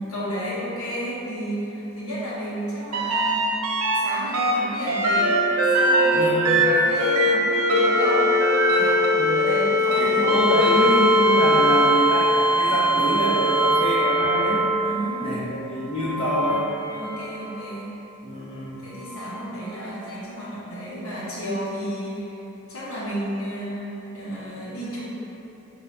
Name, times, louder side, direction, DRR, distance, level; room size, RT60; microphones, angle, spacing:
voice 1, 0.0-3.5 3.9-5.4 5.7-8.4 8.7-11.0 14.8-15.5 16.9-17.9 18.8-22.4 22.7-23.9 24.1-25.0, equal, 80° left, -8 dB, 1.1 m, -32 dB
sound 1, 2.9-4.0 4.3-15.1 16.0-17.5 19.2-19.3, equal, 85° right, 0.5 m, -21 dB
Wind instrument woodwind instrument, 5.1-9.3, left 1 dB, 60° left, 1.2 m, -32 dB
voice 2, 6.1-6.6 9.1-9.4 10.0-14.6 15.2-16.7 18.2-18.8, equal, 25° left, -7 dB, 0.6 m, -26 dB
5.2 x 2.7 x 2.7 m, 3.0 s
head